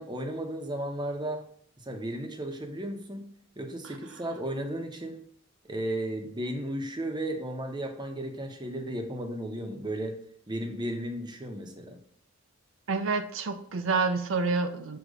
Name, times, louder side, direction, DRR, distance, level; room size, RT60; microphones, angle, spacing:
voice 1, 0.0-1.4 1.9-3.2 3.6-5.2 5.7-10.2 10.5-12.0, right 1 dB, 20° right, 4 dB, 0.8 m, -34 dB
voice 2, 12.9-15.0, right 4 dB, 70° right, 8 dB, 0.5 m, -28 dB
6.4 x 2.9 x 5.1 m, 0.62 s
head